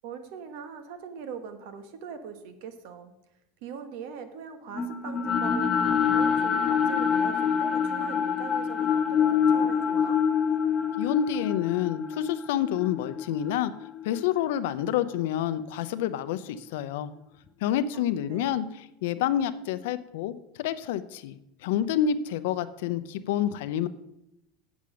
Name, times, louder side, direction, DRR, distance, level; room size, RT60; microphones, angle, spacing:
voice 1, 0.0-3.1 3.6-10.2 17.9-18.5, right 6 dB, 60° right, 9 dB, 1.2 m, -41 dB
sound 1, 4.7-14.9, left 7 dB, 20° left, 0.6 m, -26 dB
voice 2, 11.0-13.7 14.0-17.1 17.6-18.6 19.0-23.9, left 10 dB, 75° left, 13 dB, 0.6 m, -28 dB
8.5 x 7.1 x 6.3 m, 0.85 s
supercardioid pair, 170°, 0 cm